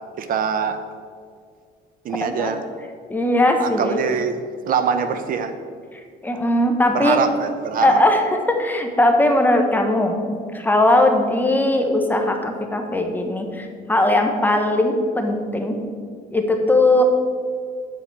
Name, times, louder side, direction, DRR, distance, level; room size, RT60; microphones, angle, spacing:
voice 1, 0.2-0.8 2.0-2.6 3.6-4.3 4.7-5.5 6.9-8.0, right 6 dB, 55° right, 9 dB, 0.7 m, -23 dB
voice 2, 3.1-4.0 6.2-7.2 7.8-10.1 10.5-15.8 16.3-17.0, left 1 dB, 10° left, 4 dB, 1.1 m, -19 dB
7.8 x 5.0 x 7.1 m, 2.1 s
cardioid pair, 110°, 17 cm